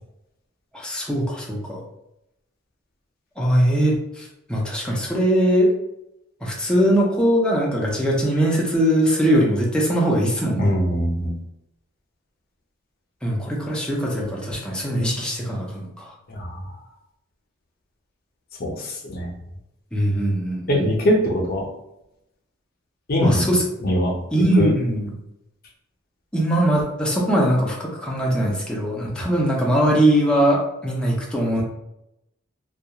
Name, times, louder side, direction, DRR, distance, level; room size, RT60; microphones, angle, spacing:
voice 1, 0.7-1.8 3.4-5.7 6.4-10.7 13.2-16.1 19.9-20.8 23.2-23.6 24.3-25.1 26.3-31.6, right 1 dB, 5° left, -3 dB, 0.4 m, -21 dB
voice 2, 10.6-11.3 16.3-16.5 18.6-19.3 20.7-21.6 23.1-23.5 23.8-24.1 24.6-24.7, left 1 dB, 50° left, -2 dB, 0.6 m, -21 dB
2.3 x 2.2 x 2.8 m, 0.84 s
head